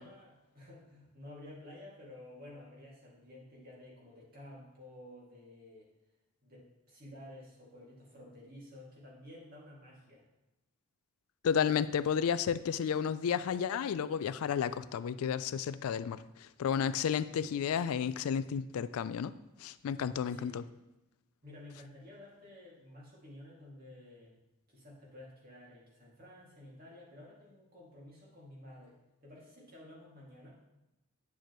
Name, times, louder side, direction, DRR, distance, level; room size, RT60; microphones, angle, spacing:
voice 1, 0.0-5.9 6.4-10.2 20.2-20.7 21.4-24.4 24.7-30.6, left 1 dB, 40° right, -4 dB, 2.3 m, -52 dB
voice 2, 11.4-19.3 19.6-20.6, left 7 dB, 80° left, 14 dB, 0.3 m, -32 dB
9.5 x 6.5 x 3.1 m, 0.98 s
head